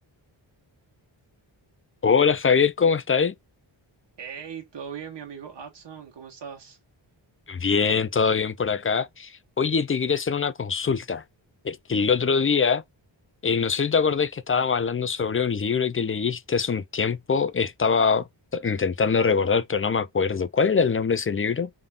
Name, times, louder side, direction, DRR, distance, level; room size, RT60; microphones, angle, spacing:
voice 1, 2.0-3.3 7.5-11.2 11.6-12.8 13.4-18.3 18.5-21.7, left 5 dB, 30° left, 0.4 m, -23 dB
voice 2, 4.2-6.8, right 7 dB, 60° right, 1.3 m, -39 dB
3.6 x 3.5 x 2.4 m
wide cardioid pair, 95°, 46 cm